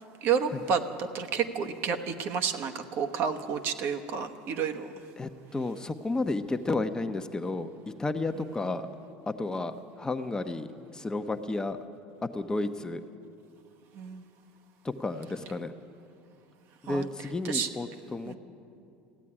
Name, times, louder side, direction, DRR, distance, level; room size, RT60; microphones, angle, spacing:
voice 1, 0.2-4.9 13.9-14.2 16.9-17.0 17.4-17.7 18.3-18.4, right 6 dB, 55° right, 7 dB, 1.0 m, -30 dB
voice 2, 5.2-8.9 9.3-10.7 10.9-11.8 12.2-13.0 14.8-15.7 16.8-18.3, left 2 dB, 15° left, 8 dB, 0.7 m, -32 dB
15.0 x 8.4 x 10.0 m, 2.5 s
supercardioid pair, 95°, 5 cm